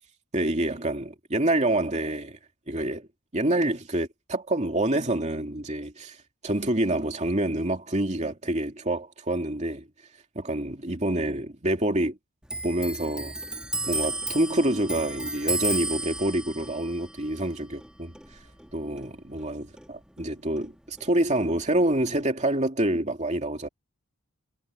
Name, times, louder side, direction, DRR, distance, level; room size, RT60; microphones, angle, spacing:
voice 1, 0.3-2.4 2.7-3.1 3.3-6.2 6.4-9.9 10.3-12.2 12.6-13.4 13.9-18.1 18.7-23.7, right 1 dB, 30° right, 2.6 m, -27 dB
Clock, 12.5-19.5 19.8-21.1 21.4-22.2, right 2 dB, 5° right, 2.0 m, -34 dB
head